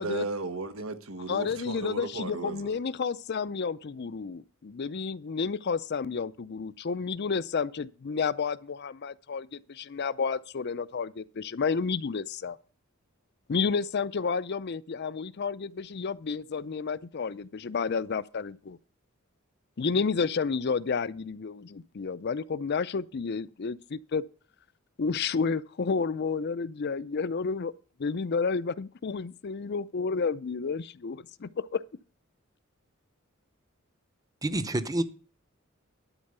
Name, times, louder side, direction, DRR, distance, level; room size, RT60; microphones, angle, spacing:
voice 1, 0.0-2.7, right 2 dB, 90° right, 1.3 m, -35 dB
voice 2, 1.3-12.6 13.5-18.8 19.8-24.2 25.0-27.7 28.0-31.8, left 5 dB, 55° left, 0.5 m, -31 dB
voice 3, 34.4-35.0, right 1 dB, 20° right, 0.7 m, -28 dB
12.0 x 4.5 x 6.7 m
head